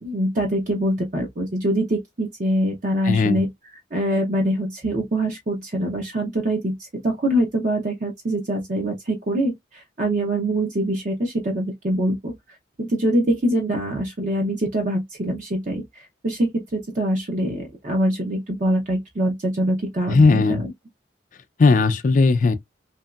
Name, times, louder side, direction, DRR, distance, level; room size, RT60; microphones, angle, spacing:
voice 1, 0.0-3.5 3.9-12.3 12.8-20.7, right 1 dB, 45° right, 0.6 m, -24 dB
voice 2, 3.1-3.4 20.1-20.6 21.6-22.6, left 3 dB, 45° left, 0.3 m, -17 dB
2.9 x 2.6 x 2.3 m
head